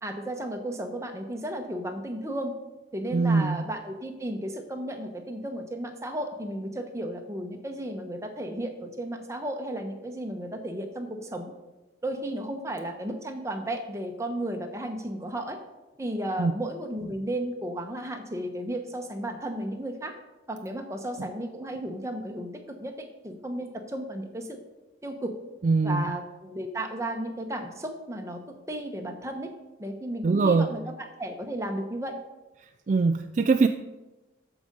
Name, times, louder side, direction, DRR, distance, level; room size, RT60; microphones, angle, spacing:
voice 1, 0.0-2.5 2.9-11.5 12.0-15.6 16.0-20.1 20.5-22.5 22.8-24.6 25.0-25.3 25.8-28.4 28.7-29.5 29.8-30.8 31.2-32.2, right 1 dB, 15° right, 4 dB, 1.0 m, -34 dB
voice 2, 3.1-3.6 16.4-16.5 25.6-26.0 30.2-30.7 32.9-33.7, right 4 dB, 40° right, 8 dB, 0.3 m, -22 dB
13.0 x 5.0 x 5.3 m, 1.1 s
head